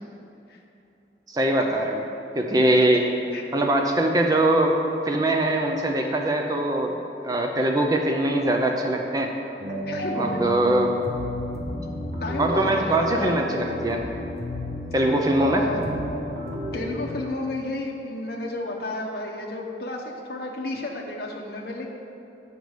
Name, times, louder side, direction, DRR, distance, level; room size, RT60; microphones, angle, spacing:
voice 1, 1.3-2.0 2.4-3.0 3.5-4.8 5.1-7.0 7.2-9.3 10.2-10.9 12.4-14.0 14.9-15.6, right 1 dB, 20° right, 2 dB, 0.4 m, -22 dB
sound 1, 9.6-17.2, left 1 dB, 65° right, 1.1 m, -32 dB
voice 2, 9.9-10.4 12.2-13.8 15.4-15.8 16.7-21.9, left 2 dB, 60° left, -1 dB, 0.7 m, -32 dB
8.0 x 5.2 x 4.7 m, 2.9 s
head